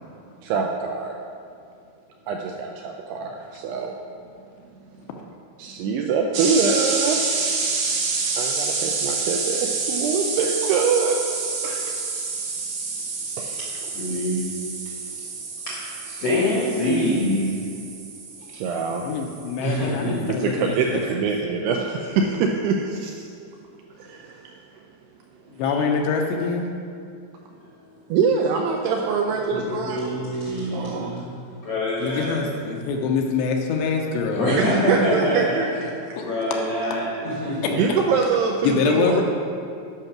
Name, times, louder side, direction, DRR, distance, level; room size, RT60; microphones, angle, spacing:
voice 1, 0.4-1.2 2.3-4.0 5.6-7.2 8.4-11.3 11.6-12.0 13.4-13.6 18.5-19.1 20.4-23.3 24.0-24.5 25.6-25.8 28.1-30.1 30.7-31.1 34.6-35.7 36.1-36.2 37.7-39.2, right 5 dB, 85° right, 2 dB, 2.4 m, -24 dB
sound 1, 6.3-19.9, right 4 dB, 65° right, 3.0 m, -28 dB
voice 2, 13.9-14.4 15.6-17.6 19.6-20.3 29.5-32.3 34.3-35.6 36.2-38.0, left 1 dB, 60° left, -7 dB, 1.6 m, -25 dB
voice 3, 19.0-21.0 25.6-26.7 32.0-34.5 36.2-36.3 37.6-37.7 38.6-39.2, left 5 dB, 80° left, 2 dB, 2.7 m, -24 dB
10.5 x 5.8 x 5.9 m, 2.4 s
omnidirectional pair, 5.2 m